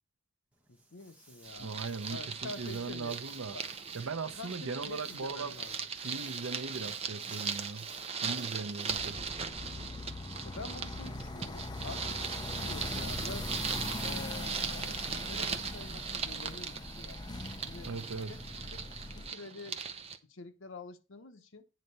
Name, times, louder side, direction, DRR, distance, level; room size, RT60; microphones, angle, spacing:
Walk footsteps, 0.5-9.3, right 2 dB, 5° right, 1.3 m, -58 dB
voice 1, 0.7-1.7 2.1-3.2 3.5-3.6 4.3-5.9 10.4-13.5 14.0-17.2 17.6-17.9 18.3-18.4 18.6-18.8 19.1-19.8 20.2-21.7, left 3 dB, 70° left, 1.0 m, -47 dB
sound 1, 1.4-20.2, right 6 dB, 30° right, 0.7 m, -39 dB
voice 2, 1.6-3.6 3.9-5.5 6.0-7.9 8.2-9.2 17.8-18.4, right 4 dB, 90° right, 0.7 m, -39 dB
sound 2, 8.9-19.3, left 2 dB, 20° left, 0.6 m, -41 dB
9.1 x 4.2 x 6.9 m
head